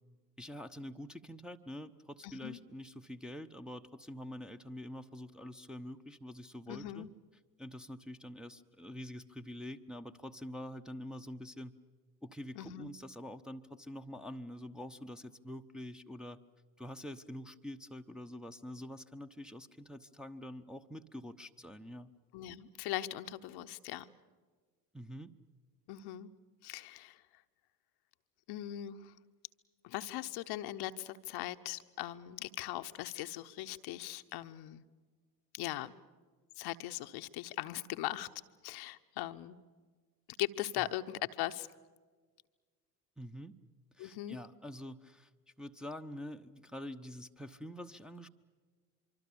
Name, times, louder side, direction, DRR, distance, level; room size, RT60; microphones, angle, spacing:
voice 1, 0.4-7.1 7.6-11.7 12.2-16.4 16.8-22.1 24.9-25.3 40.8-40.9 43.2-43.5 43.9-45.3 45.6-48.3, left 1 dB, ahead, 4 dB, 0.9 m, -46 dB
voice 2, 2.2-2.6 6.7-7.1 12.5-12.9 22.3-24.1 25.9-26.3 26.6-27.2 28.5-29.1 29.8-34.8 35.5-35.9 36.6-38.3 38.6-39.6 40.4-41.7 44.0-44.4, left 14 dB, 55° left, 9 dB, 0.9 m, -40 dB
25.0 x 24.5 x 7.0 m, 1.5 s
figure-of-eight pair, 60°, 47 cm